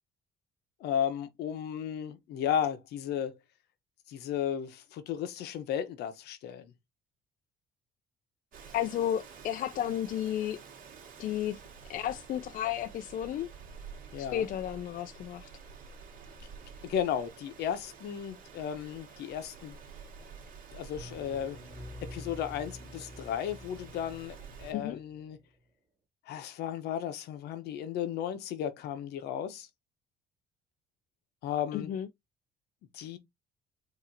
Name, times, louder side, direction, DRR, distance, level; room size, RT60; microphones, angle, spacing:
voice 1, 0.8-3.4 4.1-6.7 14.1-14.5 16.8-19.7 20.7-21.6 22.1-25.4 26.3-29.7 31.4-31.9 32.9-33.2, left 9 dB, 75° left, 1.0 m, -34 dB
Rain, 8.5-24.7, right 6 dB, 55° right, 2.1 m, -50 dB
voice 2, 8.7-10.6 11.2-11.6 11.9-13.5 14.2-15.5 24.7-25.0 31.7-32.1, left 11 dB, 55° left, 0.4 m, -33 dB
sound 1, 20.9-25.4, left 1 dB, 20° right, 2.4 m, -48 dB
4.8 x 2.8 x 2.7 m
cardioid pair, 110°, 17 cm